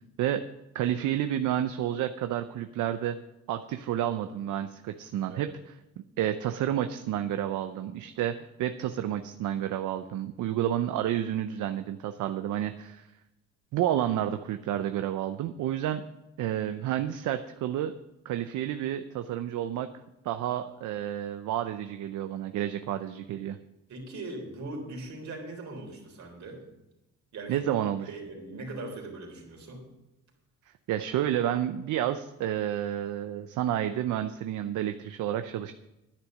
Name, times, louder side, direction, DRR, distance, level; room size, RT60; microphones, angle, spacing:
voice 1, 0.7-3.2 3.5-5.5 6.2-13.1 13.7-16.0 16.4-17.9 18.2-19.9 20.2-23.6 27.5-28.1 30.9-35.7, right 11 dB, 80° right, 9 dB, 0.6 m, -30 dB
voice 2, 23.9-26.6 27.3-27.7 28.1-29.8, right 2 dB, 65° right, 1 dB, 3.7 m, -40 dB
10.0 x 9.8 x 6.2 m, 0.94 s
cardioid pair, 90°, 30 cm